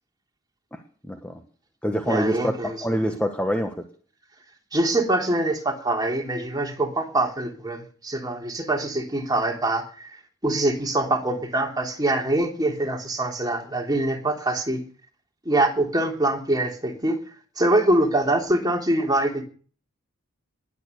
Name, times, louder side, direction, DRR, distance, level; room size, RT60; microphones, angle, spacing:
voice 1, 0.7-1.4 1.8-3.8, equal, 5° left, 1.4 m, -26 dB
voice 2, 2.0-2.8 3.0-3.1 4.7-10.2 10.4-14.8 15.4-17.2 17.6-19.4, right 1 dB, 20° right, 3.2 m, -24 dB
20.5 x 9.1 x 6.7 m
head